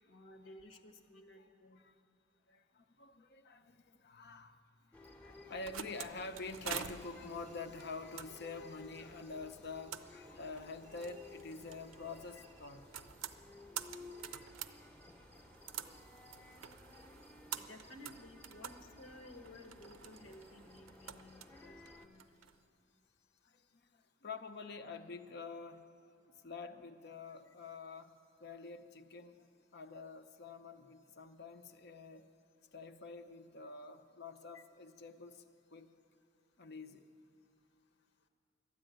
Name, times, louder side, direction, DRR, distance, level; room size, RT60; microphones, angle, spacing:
voice 1, 0.1-1.8 17.5-22.5 34.5-34.6, left 1 dB, 80° left, 1.2 m, -56 dB
voice 2, 2.5-4.9 5.2-12.8 14.8-14.9 15.6-16.0 16.7-16.8 23.4-25.9 26.3-29.5 29.7-32.3 32.7-35.4 35.7-35.9 36.6-37.0, left 4 dB, 55° left, 0.7 m, -47 dB
sound 1, 4.9-22.1, left 2 dB, 5° left, 0.8 m, -57 dB
sound 2, 5.3-22.6, right 9 dB, 90° right, 0.6 m, -49 dB
13.0 x 10.5 x 9.0 m
head